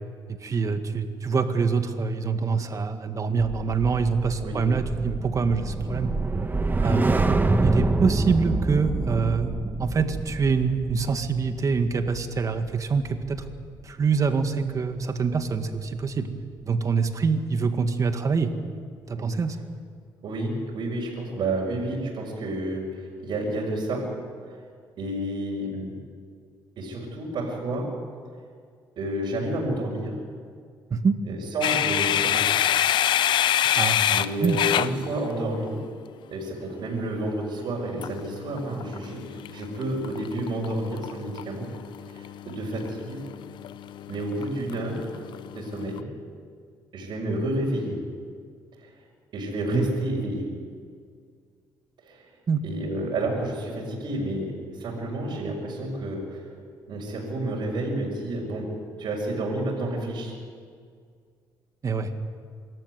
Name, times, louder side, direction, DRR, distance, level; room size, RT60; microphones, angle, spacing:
voice 1, 0.3-6.1 6.8-7.3 7.6-9.5 9.8-13.4 13.8-16.3 16.6-18.5 19.1-19.6 30.9-31.2 33.8-34.0 34.4-34.6 49.7-49.9 52.5-52.6 61.8-62.1, right 5 dB, 40° right, 7 dB, 1.9 m, -25 dB
sound 1, 3.5-13.8 14.1-14.4, right 3 dB, 25° right, 1.4 m, -27 dB
voice 2, 6.8-7.2 19.2-19.3 20.2-24.2 24.5-24.6 25.0-26.0 26.8-28.0 29.0-30.2 31.2-32.5 33.4-33.5 34.1-35.8 36.3-41.7 42.1-43.2 44.1-45.1 45.5-46.1 46.9-48.0 48.8-48.9 49.3-50.5 52.0-52.3 52.6-56.5 56.9-60.3, right 1 dB, 65° right, -4 dB, 5.6 m, -30 dB
sound 2, 31.6-35.7 38.0-46.0, left 11 dB, 70° left, 0.7 m, -27 dB
25.0 x 13.5 x 9.5 m, 2.1 s
cardioid pair, 85°, 8 cm